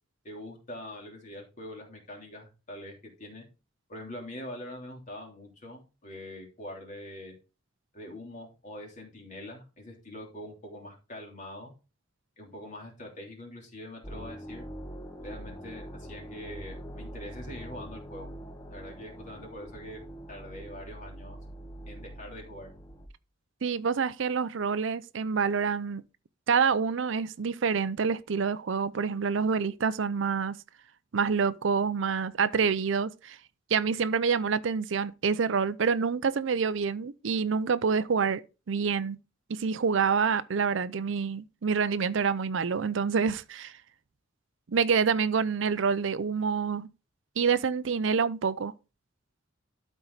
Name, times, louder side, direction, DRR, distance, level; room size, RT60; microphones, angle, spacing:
voice 1, 0.2-3.4 3.9-7.4 7.9-11.7 12.4-14.6 15.2-18.3 18.7-20.0 20.3-21.4 21.9-22.7, left 1 dB, 40° left, 3.2 m, -44 dB
sound 1, 14.0-23.1, equal, 20° left, 1.0 m, -43 dB
voice 2, 23.6-26.0 26.5-30.6 31.1-33.4 33.7-38.4 38.7-39.2 39.5-43.7 44.7-46.9 47.4-48.7, right 5 dB, 65° right, 0.5 m, -27 dB
12.5 x 4.6 x 3.9 m
head